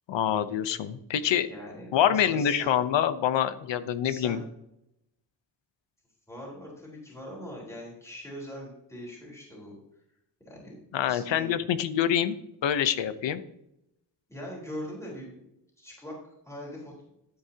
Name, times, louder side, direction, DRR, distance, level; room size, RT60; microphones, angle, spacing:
voice 1, 0.1-1.5 1.9-4.4 10.9-12.4 12.6-13.4, left 9 dB, 85° left, 12 dB, 0.9 m, -26 dB
voice 2, 1.5-2.8 4.0-4.4 6.3-9.7 10.5-10.8 11.0-11.5 14.3-15.3 15.8-16.1 16.5-16.9, equal, 5° left, -4 dB, 4.0 m, -41 dB
13.0 x 8.7 x 2.9 m, 0.79 s
wide cardioid pair, 145°, 43 cm